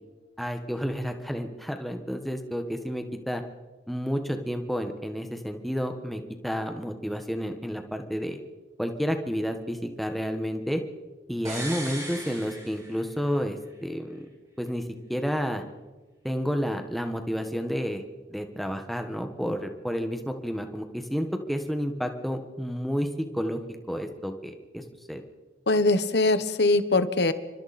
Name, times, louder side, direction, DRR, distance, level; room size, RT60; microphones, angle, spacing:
voice 1, 0.4-3.4 3.9-8.4 8.8-10.8 11.3-14.3 14.6-14.8 15.1-15.6 16.2-18.0 18.3-23.6 23.9-25.2, equal, ahead, 5 dB, 1.5 m, -30 dB
sound 1, 11.4-13.4 13.7-13.8, right 1 dB, 20° right, 5.8 m, -38 dB
voice 2, 25.7-27.3, left 2 dB, 75° left, 11 dB, 1.4 m, -22 dB
28.5 x 25.0 x 4.4 m, 1.3 s
head